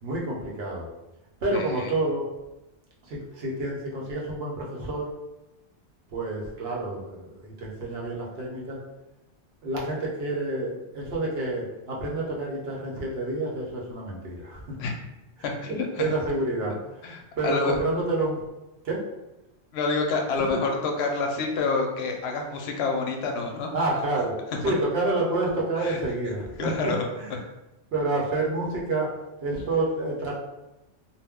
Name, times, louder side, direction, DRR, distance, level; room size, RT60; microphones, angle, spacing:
voice 1, 0.0-0.9 1.4-2.3 3.0-5.1 6.1-8.8 9.6-14.8 15.4-18.4 18.8-19.0 20.5-20.6 23.7-27.4 27.9-29.1 29.4-30.3, right 2 dB, 65° right, -4 dB, 0.9 m, -29 dB
voice 2, 15.4-15.9 17.0-17.7 19.7-23.7 25.8-26.0 26.6-27.0, left 4 dB, 70° left, 2 dB, 0.8 m, -27 dB
2.4 x 2.0 x 3.4 m, 0.97 s
omnidirectional pair, 1.2 m